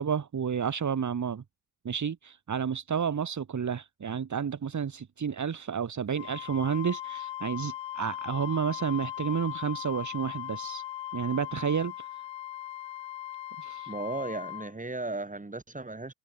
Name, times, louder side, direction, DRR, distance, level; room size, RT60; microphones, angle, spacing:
voice 1, 0.0-1.4 1.8-10.8 11.1-12.1 13.6-13.9, right 7 dB, 35° right, 2.2 m, -31 dB
Wind instrument woodwind instrument, 6.1-14.7, left 13 dB, 60° left, 3.8 m, -39 dB
voice 2, 13.9-16.1, right 2 dB, 15° right, 4.7 m, -35 dB
figure-of-eight pair, 40°, 49 cm